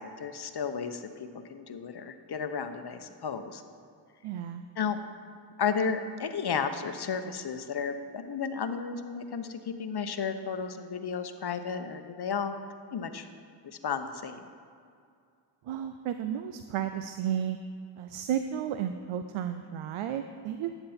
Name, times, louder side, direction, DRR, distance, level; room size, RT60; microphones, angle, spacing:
voice 1, 0.0-3.6 4.8-5.0 5.6-12.5 12.9-13.3 13.6-14.4, left 6 dB, 50° left, 9 dB, 0.8 m, -33 dB
voice 2, 4.2-4.6 15.7-17.6 18.0-20.7, right 9 dB, 80° right, 9 dB, 0.5 m, -33 dB
11.5 x 7.0 x 4.3 m, 2.3 s
cardioid pair, 45°, 49 cm